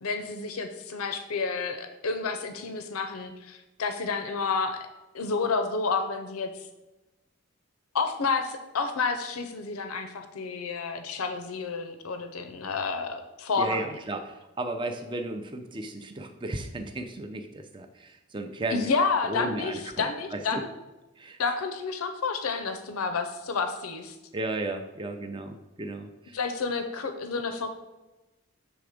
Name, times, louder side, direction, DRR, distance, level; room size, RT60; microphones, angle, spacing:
voice 1, 0.0-4.9 5.1-6.5 7.9-13.9 18.7-20.7 21.4-24.1 26.3-27.7, left 4 dB, 90° left, 8 dB, 0.6 m, -30 dB
voice 2, 13.6-18.9 19.2-20.6 21.2-21.4 24.3-26.4, right 2 dB, 20° right, 7 dB, 0.5 m, -34 dB
7.1 x 3.4 x 4.9 m, 1.1 s
head